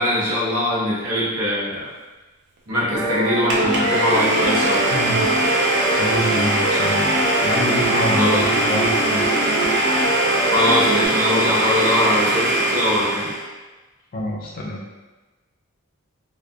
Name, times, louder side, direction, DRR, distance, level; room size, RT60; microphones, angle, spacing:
voice 1, 0.0-1.9 2.7-4.9 8.2-8.5 10.5-13.3, left 1 dB, 85° right, -8 dB, 0.9 m, -22 dB
sound 1, 2.9-11.1, right 1 dB, 15° right, 0.6 m, -24 dB
Domestic sounds home sounds, 3.5-13.5, right 1 dB, 50° right, 0.4 m, -21 dB
voice 2, 6.0-7.2 7.4-9.2 14.1-14.8, equal, 40° left, -3 dB, 0.4 m, -26 dB
2.5 x 2.1 x 2.3 m, 1.2 s
head